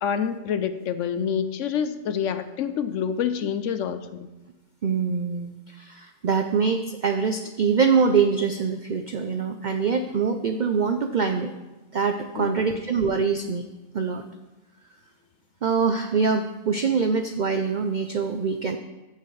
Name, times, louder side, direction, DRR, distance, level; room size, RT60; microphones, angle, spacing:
voice 1, 0.0-4.3 12.4-12.8, left 7 dB, 70° left, 11 dB, 0.9 m, -27 dB
voice 2, 4.8-11.5 11.9-13.6 13.9-14.2 15.6-18.8, right 5 dB, 70° right, 7 dB, 0.4 m, -24 dB
14.5 x 6.7 x 3.2 m, 1.1 s
omnidirectional pair, 1.4 m